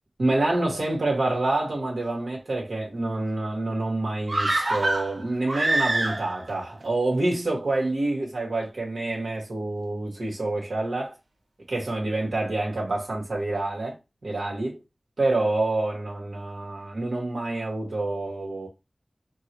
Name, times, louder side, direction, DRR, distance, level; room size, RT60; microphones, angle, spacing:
voice 1, 0.2-11.2 11.7-14.0 14.2-14.8 15.2-18.7, right 2 dB, 85° right, 2.2 m, -27 dB
sound 1, 4.3-6.5 6.8-6.9, right 2 dB, 60° right, 0.9 m, -25 dB
4.6 x 2.8 x 3.1 m
wide cardioid pair, 65°, 0 cm